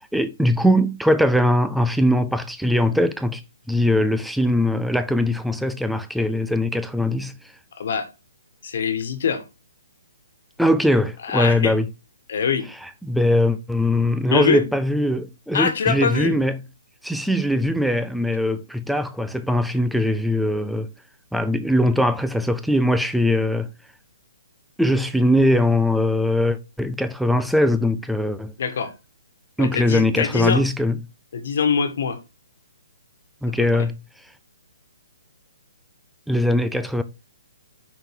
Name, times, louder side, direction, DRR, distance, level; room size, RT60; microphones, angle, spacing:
voice 1, 0.1-3.4 3.7-7.4 10.6-11.9 12.8-16.6 17.0-20.9 21.3-23.7 24.8-28.5 29.6-31.0 33.4-34.0 36.3-37.0, left 1 dB, ahead, 0.4 m, -21 dB
voice 2, 7.8-8.1 8.6-9.4 11.2-11.7 12.3-12.6 14.3-14.6 15.5-16.4 28.6-28.9 29.6-30.6 31.3-32.2 33.6-33.9, left 6 dB, 55° left, 1.5 m, -23 dB
5.6 x 5.4 x 4.7 m
hypercardioid pair, 165°, 0 cm